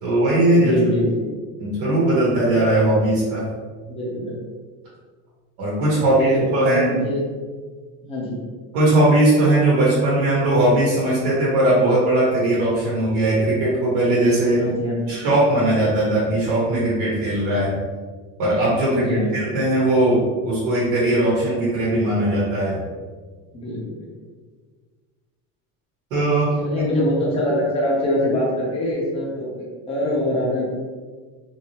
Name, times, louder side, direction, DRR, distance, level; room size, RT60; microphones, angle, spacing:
voice 1, 0.0-0.7 1.6-3.4 5.6-6.8 8.7-14.6 15.1-17.7 18.4-22.8 26.1-26.5, right 1 dB, 65° right, -7 dB, 1.4 m, -19 dB
voice 2, 0.5-1.3 3.9-4.3 5.9-7.2 8.0-8.4 14.5-15.1 18.9-19.4 23.5-24.0 26.6-30.6, left 1 dB, 15° left, -4 dB, 0.7 m, -23 dB
3.6 x 3.1 x 2.9 m, 1.5 s
cardioid pair, 180°, 38 cm